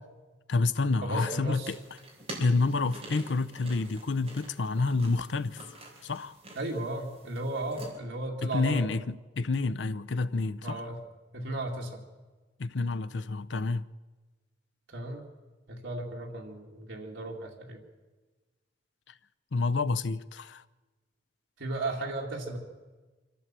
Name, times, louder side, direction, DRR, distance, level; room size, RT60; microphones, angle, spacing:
voice 1, 0.5-1.8 2.4-5.6 6.0-6.4 8.4-10.9 12.6-13.9 19.5-20.6, left 3 dB, 70° left, 0.6 m, -29 dB
voice 2, 1.0-1.7 6.5-8.8 10.6-11.0 11.3-12.0 14.9-15.2 15.7-17.8 21.6-22.6, right 2 dB, 80° right, 2.4 m, -35 dB
sound 1, 1.7-7.9, right 1 dB, 30° right, 4.2 m, -47 dB
25.0 x 14.5 x 7.5 m
head